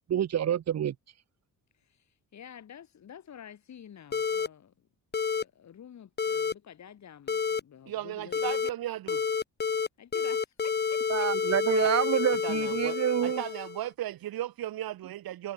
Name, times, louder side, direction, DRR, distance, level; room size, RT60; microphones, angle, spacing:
voice 1, 0.1-0.9 11.1-13.4, right 10 dB, 45° right, 1.4 m, -27 dB
voice 2, 1.7-4.7 5.3-8.5 10.0-11.9, left 9 dB, 45° left, 5.8 m, -50 dB
sound 1, 4.1-4.5 5.1-5.4 6.2-6.5 7.3-7.6 8.3-8.7 9.1-9.9 10.1-13.9, left 5 dB, 25° left, 2.1 m, -29 dB
voice 3, 7.9-9.2 12.4-15.5, right 13 dB, 70° right, 2.2 m, -36 dB
cardioid pair, 160°, 37 cm